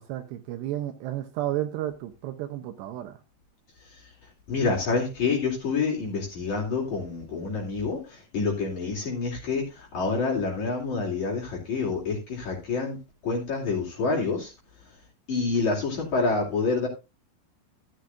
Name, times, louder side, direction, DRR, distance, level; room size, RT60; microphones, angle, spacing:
voice 1, 0.1-3.2, right 13 dB, 80° right, 7 dB, 2.6 m, -32 dB
voice 2, 4.5-13.0 13.2-14.5 15.3-16.9, left 4 dB, 45° left, -4 dB, 3.4 m, -27 dB
13.5 x 11.5 x 2.5 m, 0.26 s
omnidirectional pair, 5.5 m